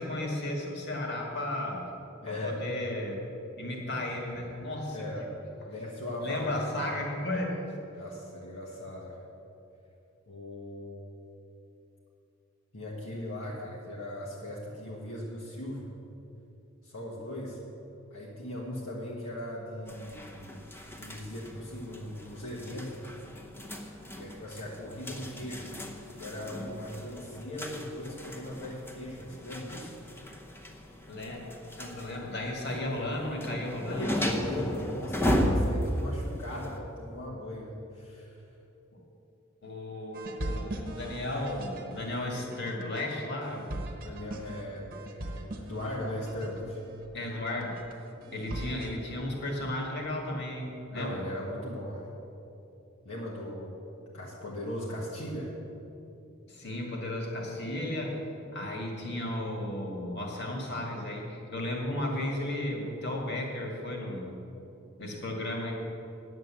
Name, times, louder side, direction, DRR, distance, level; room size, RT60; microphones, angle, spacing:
voice 1, 0.0-1.9 2.3-3.2 3.6-5.1 6.2-7.6 31.1-31.4 31.8-34.7 38.9-39.0 39.6-43.9 47.1-47.8 48.3-51.2 56.5-58.2 58.5-64.3 65.0-65.7, left 1 dB, 55° left, 0 dB, 2.0 m, -34 dB
voice 2, 2.2-2.6 4.9-5.3 5.7-6.7 7.9-9.2 10.3-11.1 12.7-15.9 16.8-17.6 18.1-20.6 20.9-23.0 24.2-25.7 26.1-30.0 33.9-38.4 44.0-46.8 50.9-52.1 53.0-53.7 54.1-55.6, left 1 dB, 70° left, -4 dB, 1.4 m, -38 dB
sound 1, 19.9-36.8, equal, 10° left, 0.8 m, -35 dB
sound 2, 40.1-49.0, right 1 dB, 45° right, 1.0 m, -41 dB
9.5 x 7.9 x 7.5 m, 2.9 s
head